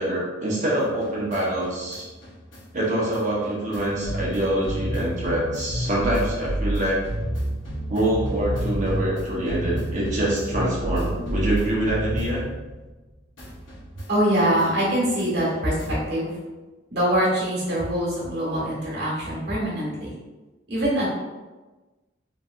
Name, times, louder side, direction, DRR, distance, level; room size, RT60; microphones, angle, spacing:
voice 1, 0.0-2.0 2.7-7.0 7.9-12.4, right 1 dB, 40° right, -5 dB, 0.8 m, -25 dB
sound 1, 0.8-13.1 13.4-16.1, right 1 dB, 85° left, 0.8 m, -31 dB
voice 2, 14.1-16.3 16.9-20.1 20.7-21.1, right 1 dB, 60° right, -6 dB, 1.3 m, -24 dB
3.1 x 2.6 x 2.4 m, 1.2 s
head